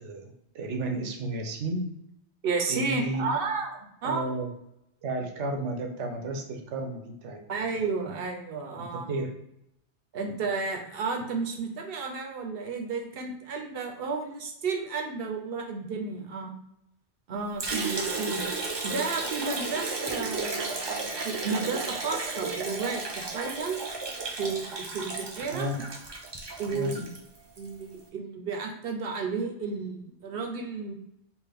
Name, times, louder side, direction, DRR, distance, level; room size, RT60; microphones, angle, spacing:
voice 1, 0.0-1.9 2.7-3.3 4.0-4.5 5.0-7.4 7.7-7.8 8.8-9.3 25.5-25.8 26.7-26.9, right 2 dB, 90° right, 4 dB, 1.0 m, -32 dB
voice 2, 2.4-3.7 4.0-4.3 7.5-9.1 10.1-16.5 17.3-18.5 18.8-23.8 24.4-25.7 26.6-27.1 27.6-30.9, right 4 dB, 65° right, 3 dB, 0.7 m, -32 dB
Liquid, 17.6-27.7, right 3 dB, 40° right, 0.3 m, -33 dB
3.5 x 2.5 x 3.4 m, 0.80 s
omnidirectional pair, 1.2 m